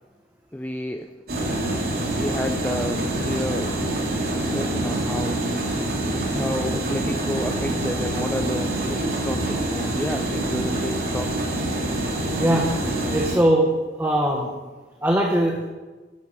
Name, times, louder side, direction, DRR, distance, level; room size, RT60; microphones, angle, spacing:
voice 1, 0.5-1.1 2.2-3.9 4.3-5.4 6.2-11.4, left 1 dB, 10° left, 5 dB, 0.6 m, -31 dB
sound 1, 1.3-13.3, right 1 dB, 60° right, 3.4 m, -26 dB
voice 2, 13.1-13.7 14.0-14.5 15.0-15.7, right 1 dB, 15° right, 0 dB, 1.3 m, -20 dB
12.0 x 11.0 x 7.0 m, 1.3 s
head